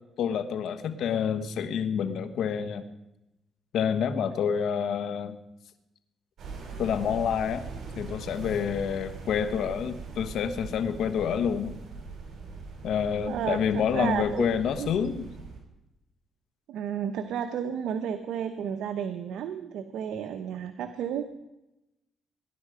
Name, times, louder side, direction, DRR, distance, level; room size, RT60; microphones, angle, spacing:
voice 1, 0.2-2.8 3.7-5.3 6.8-7.6 8.0-11.8 12.8-15.3, left 7 dB, 75° left, 10 dB, 1.2 m, -28 dB
sound 1, 6.4-15.6, right 4 dB, 60° right, 5.7 m, -41 dB
voice 2, 13.3-14.5 14.8-14.9 16.7-21.2, right 8 dB, 80° right, 7 dB, 1.0 m, -32 dB
19.5 x 10.5 x 5.0 m, 0.92 s
cardioid pair, 90°, 0 cm